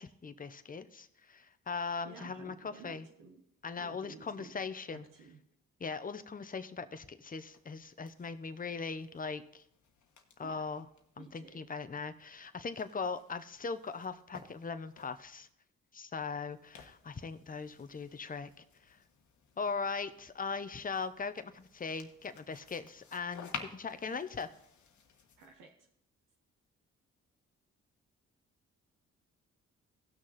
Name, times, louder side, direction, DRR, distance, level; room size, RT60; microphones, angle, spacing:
voice 1, 0.0-3.1 3.6-5.1 5.8-9.6 10.4-10.9 11.2-15.5 15.9-18.5 18.9-19.0 19.6-24.5, left 5 dB, 25° left, 11 dB, 0.8 m, -39 dB
voice 2, 2.0-3.4 3.8-5.4 10.4-10.6 11.2-11.6 25.4-25.7, right 5 dB, 80° right, 2 dB, 1.2 m, -53 dB
sound 1, 7.3-15.5 16.5-25.5, left 6 dB, 65° left, 1.4 m, -53 dB
16.5 x 6.3 x 4.1 m, 0.74 s
supercardioid pair, 60°, 31 cm